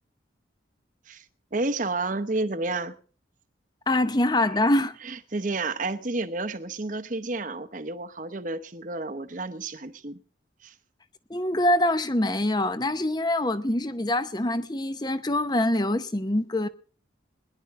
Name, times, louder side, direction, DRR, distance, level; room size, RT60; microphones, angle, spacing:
voice 1, 1.5-3.0 5.0-10.2 10.6-10.7, right 2 dB, 40° right, 0.9 m, -31 dB
voice 2, 3.9-5.0 11.3-16.7, left 1 dB, 20° left, 0.8 m, -24 dB
21.5 x 11.0 x 3.6 m
head